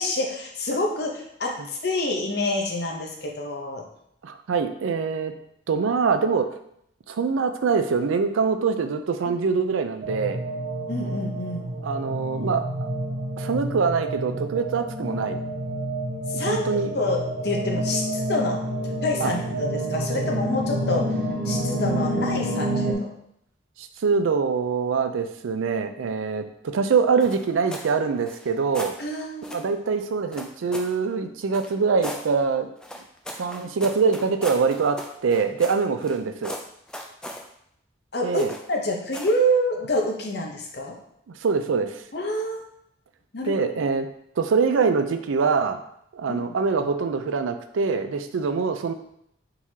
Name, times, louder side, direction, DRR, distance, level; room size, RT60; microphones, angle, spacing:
voice 1, 0.0-3.9 9.2-9.3 10.9-11.6 16.3-18.6 19.0-21.1 21.5-23.1 29.0-29.7 38.1-38.4 38.7-41.0 42.1-42.6 43.3-43.8 46.3-46.4, left 1 dB, 55° left, 1 dB, 0.8 m, -27 dB
voice 2, 4.2-5.3 5.7-6.5 7.1-10.4 11.8-12.9 13.4-15.4 16.5-16.9 19.2-19.3 23.8-28.9 29.5-32.7 33.4-36.5 38.2-38.5 41.4-41.9 43.4-44.1 44.4-45.8 46.1-48.9, right 5 dB, 85° right, 8 dB, 0.4 m, -24 dB
sound 1, 10.0-22.9, right 1 dB, 50° right, 1.0 m, -28 dB
sound 2, 27.2-27.9 28.2-29.0 29.4-29.7 30.3-31.0 31.5-32.3 32.8-36.2 36.4-37.4 38.4-38.7 39.1-39.4, equal, 5° left, 0.3 m, -37 dB
4.6 x 3.8 x 2.8 m, 0.73 s
head